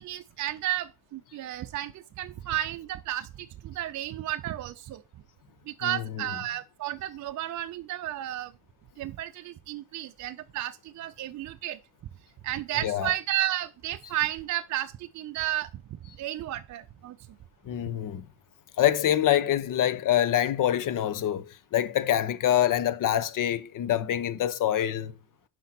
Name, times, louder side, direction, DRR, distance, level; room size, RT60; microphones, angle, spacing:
voice 1, 0.0-5.0 5.7-8.5 9.0-11.8 12.4-17.2, right 14 dB, 40° right, 0.5 m, -33 dB
voice 2, 5.8-6.5 12.7-13.1 17.7-18.3 18.8-25.1, left 11 dB, 45° left, 0.8 m, -26 dB
6.0 x 5.6 x 4.3 m
hypercardioid pair, 60°, 44 cm